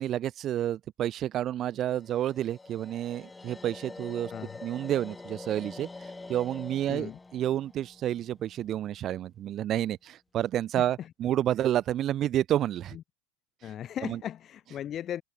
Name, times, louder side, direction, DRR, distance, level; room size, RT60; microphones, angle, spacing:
voice 1, 0.0-4.3 4.6-5.9 6.3-12.9 13.6-13.7 14.0-14.2, right 12 dB, 40° right, 0.8 m, -30 dB
sound 1, 1.9-9.0, left 3 dB, 10° left, 1.5 m, -46 dB
voice 2, 6.9-7.2 10.8-11.1 12.9-13.0 13.6-15.2, left 10 dB, 40° left, 3.8 m, -37 dB
hypercardioid pair, 100°, 0 cm